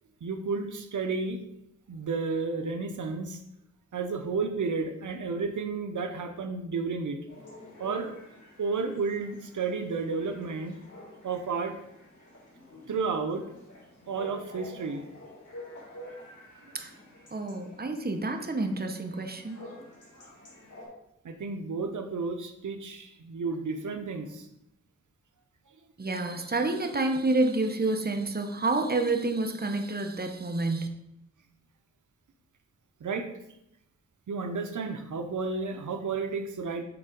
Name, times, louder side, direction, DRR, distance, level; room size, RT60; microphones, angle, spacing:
voice 1, 0.2-1.4 1.9-3.4 3.9-7.2 7.8-8.1 8.6-10.7 11.2-11.7 12.9-13.4 14.1-15.1 21.2-24.5 33.0-33.3 34.3-36.8, right 4 dB, 85° right, 6 dB, 0.7 m, -32 dB
Chatter / Bark / Livestock farm animals working animals, 7.3-20.9, left 1 dB, 85° left, 2.7 m, -49 dB
voice 2, 17.3-19.6 26.0-30.9, right 2 dB, 30° right, 5 dB, 0.9 m, -28 dB
6.9 x 3.8 x 5.1 m, 0.82 s
wide cardioid pair, 60°, 29 cm